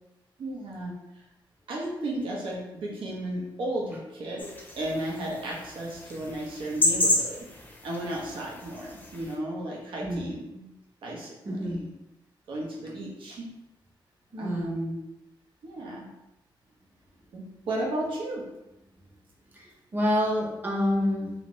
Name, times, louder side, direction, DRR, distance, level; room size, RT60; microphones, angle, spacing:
voice 1, 0.4-0.9 1.7-4.5 4.8-7.5 7.8-10.6 11.0-11.9 12.5-13.5 14.4-15.0 15.6-16.1 17.3-18.4, right 1 dB, 90° right, -3 dB, 1.0 m, -34 dB
sound 1, 4.4-9.3, left 1 dB, 20° left, 0.5 m, -31 dB
voice 2, 11.4-11.8 14.3-14.8 19.6-21.3, equal, 20° right, -2 dB, 0.7 m, -27 dB
3.2 x 2.9 x 3.1 m, 0.92 s
wide cardioid pair, 160°, 9 cm